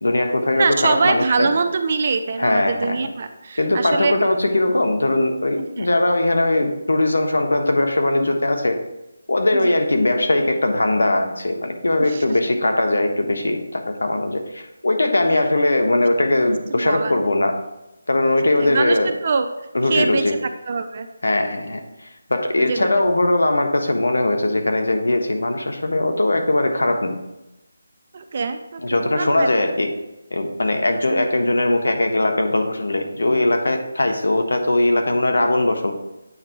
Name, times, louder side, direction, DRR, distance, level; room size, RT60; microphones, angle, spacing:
voice 1, 0.0-1.5 2.4-3.0 3.6-8.8 9.3-17.6 18.1-19.1 19.7-20.3 21.2-27.2 28.8-29.9 30.3-35.9, left 2 dB, 90° left, 4 dB, 1.3 m, -20 dB
voice 2, 0.5-4.1 5.6-5.9 9.5-9.8 12.0-12.2 15.2-15.5 16.0-16.1 16.7-17.2 18.6-19.5 19.8-21.1 22.6-23.1 28.1-29.5 31.1-31.3, right 4 dB, 35° right, 8 dB, 0.6 m, -24 dB
8.7 x 3.8 x 4.6 m, 0.94 s
figure-of-eight pair, 170°, 0 cm